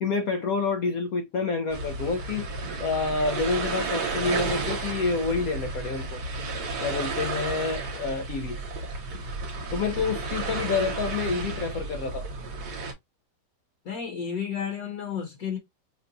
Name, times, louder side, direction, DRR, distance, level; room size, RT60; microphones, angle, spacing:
voice 1, 0.0-2.5 2.8-6.2 6.8-8.6 9.7-12.3, left 4 dB, 75° left, 0.8 m, -28 dB
sound 1, 1.7-12.9, right 3 dB, 60° right, 1.4 m, -32 dB
voice 2, 13.8-15.6, left 7 dB, 55° left, 1.3 m, -32 dB
5.5 x 2.2 x 2.5 m
omnidirectional pair, 2.1 m